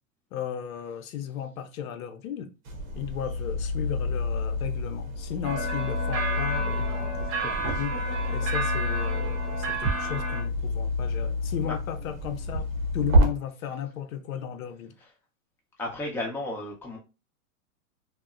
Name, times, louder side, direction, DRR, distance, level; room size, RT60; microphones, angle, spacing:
voice 1, 0.3-2.5 3.0-12.7 12.9-14.9, left 9 dB, 85° left, 0.6 m, -35 dB
sound 1, 2.7-13.2, left 1 dB, 80° right, 0.9 m, -28 dB
sound 2, 5.4-10.4, right 2 dB, 35° right, 0.8 m, -32 dB
voice 2, 15.8-17.0, left 1 dB, 5° left, 0.6 m, -33 dB
2.8 x 2.1 x 2.3 m
hypercardioid pair, 120°, 41 cm